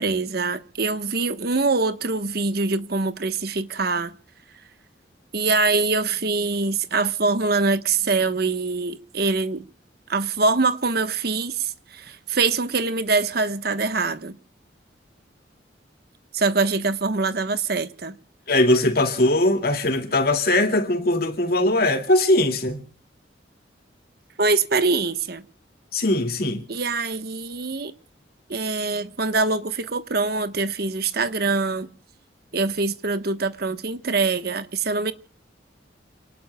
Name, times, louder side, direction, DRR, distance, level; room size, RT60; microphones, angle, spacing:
voice 1, 0.0-4.1 5.3-9.6 10.1-14.4 16.3-18.2 24.4-25.4 26.7-27.9 28.5-31.9 32.5-35.1, right 3 dB, 55° right, 1.2 m, -24 dB
voice 2, 18.5-22.8 25.9-26.6, left 1 dB, 55° left, 2.3 m, -20 dB
29.5 x 19.0 x 2.3 m
head